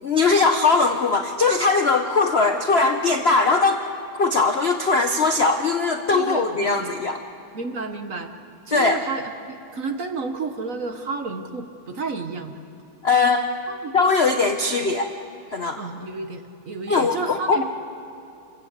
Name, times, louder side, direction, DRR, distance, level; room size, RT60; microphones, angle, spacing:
voice 1, 0.0-3.8 4.1-7.2 8.7-9.0 13.0-13.5 13.9-15.1 15.5-15.8 16.9-17.6, left 4 dB, 50° left, 6 dB, 0.7 m, -20 dB
voice 2, 6.1-6.9 7.5-8.3 8.7-12.5 13.7-13.9 15.8-17.6, right 4 dB, 45° right, 6 dB, 1.3 m, -31 dB
28.5 x 15.5 x 8.2 m, 2.7 s
omnidirectional pair, 2.2 m